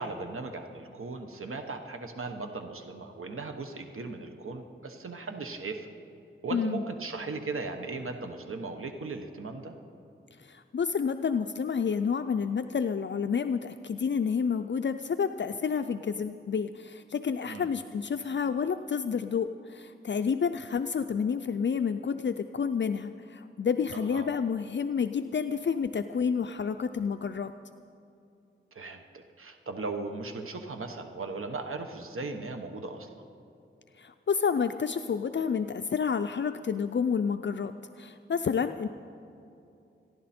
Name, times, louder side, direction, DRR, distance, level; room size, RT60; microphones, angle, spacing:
voice 1, 0.0-5.9 6.4-9.7 17.5-17.7 23.9-24.3 28.7-33.2, right 3 dB, 85° right, 5 dB, 1.1 m, -37 dB
voice 2, 6.5-6.8 10.4-27.5 34.0-38.9, left 6 dB, 60° left, 9 dB, 0.5 m, -29 dB
27.0 x 11.0 x 4.3 m, 2.7 s
wide cardioid pair, 65°, 21 cm